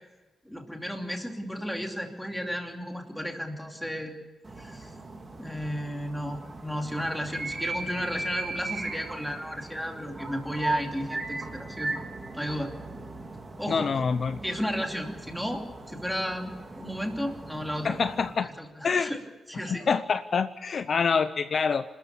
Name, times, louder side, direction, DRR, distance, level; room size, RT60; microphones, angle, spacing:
voice 1, 0.4-4.1 4.6-4.9 5.4-12.0 12.3-12.7 13.6-13.9 14.4-15.6 15.9-17.9 18.4-19.2 19.5-19.8, equal, ahead, 2 dB, 2.8 m, -33 dB
sound 1, 4.4-18.4, right 2 dB, 25° right, 3.0 m, -38 dB
voice 2, 13.7-14.4 17.8-18.5 18.8-19.1 19.7-21.8, left 5 dB, 50° left, 11 dB, 0.6 m, -26 dB
26.0 x 13.5 x 8.4 m, 1.3 s
wide cardioid pair, 150°, 0 cm